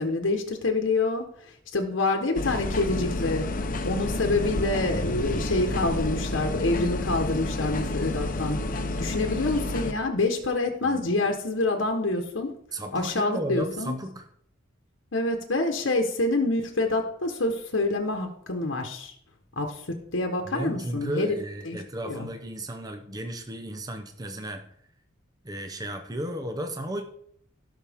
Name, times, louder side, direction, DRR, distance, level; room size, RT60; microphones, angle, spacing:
voice 1, 0.0-3.5 3.8-12.5 12.9-14.0 15.1-19.1 19.6-21.4 21.6-21.8 22.0-22.3, left 2 dB, 85° left, 3 dB, 1.2 m, -27 dB
sound 1, 2.3-9.9, left 2 dB, 45° left, 0.8 m, -30 dB
voice 2, 12.7-14.3 20.4-24.6 25.4-27.0, right 1 dB, 20° right, 6 dB, 0.7 m, -34 dB
16.5 x 5.8 x 3.6 m, 0.68 s
head